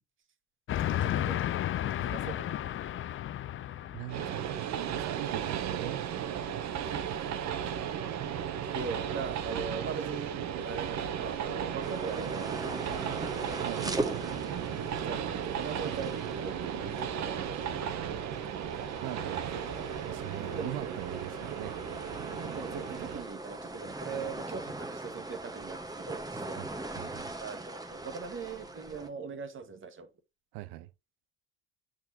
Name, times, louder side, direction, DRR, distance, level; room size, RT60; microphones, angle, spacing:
Train, 0.7-4.6, left 12 dB, 40° left, 0.6 m, -33 dB
voice 1, 0.9-1.4 2.0-2.6 6.9-7.6 8.7-12.9 15.0-17.7 18.0-18.2 19.0-19.5 20.4-20.9 22.4-26.7 27.4-30.1, right 5 dB, 35° right, 1.7 m, -41 dB
voice 2, 3.9-4.6 5.0-6.0 13.6-14.3 19.0-19.5 20.1-21.7 26.6-26.7 27.0-27.3 30.5-30.9, right 17 dB, 70° right, 0.8 m, -40 dB
Train 2, 4.1-23.2, right 8 dB, 55° right, 1.2 m, -35 dB
sound 1, 11.8-29.1, right 2 dB, 10° right, 1.3 m, -41 dB
8.9 x 6.4 x 2.8 m
hypercardioid pair, 75°, 34 cm